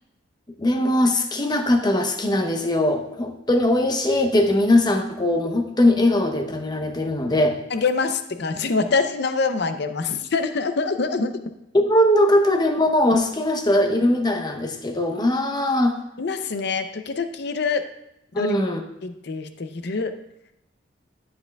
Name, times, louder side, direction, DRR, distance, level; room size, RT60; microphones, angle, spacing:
voice 1, 0.6-7.6 11.7-16.0 18.3-18.8, left 1 dB, 20° left, 5 dB, 0.8 m, -20 dB
voice 2, 7.7-11.4 16.2-17.9 18.4-18.5 19.0-20.1, left 4 dB, 60° left, 9 dB, 0.6 m, -25 dB
11.5 x 7.5 x 2.3 m, 0.85 s
head